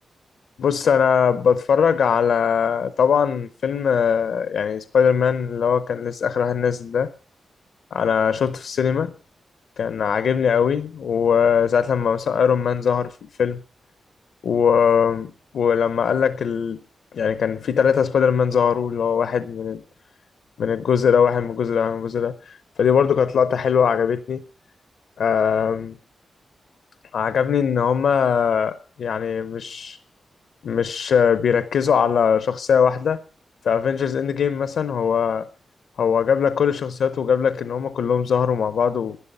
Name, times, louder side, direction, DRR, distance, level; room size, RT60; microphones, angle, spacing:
voice 1, 0.6-7.1 7.9-9.1 9.8-13.6 14.4-16.8 17.1-19.8 20.6-24.4 25.2-26.0 27.1-30.0 30.6-33.2 33.6-35.5 36.0-39.2, left 7 dB, 85° left, 13 dB, 0.7 m, -21 dB
11.0 x 11.0 x 6.7 m, 0.42 s
wide cardioid pair, 145°, 0 cm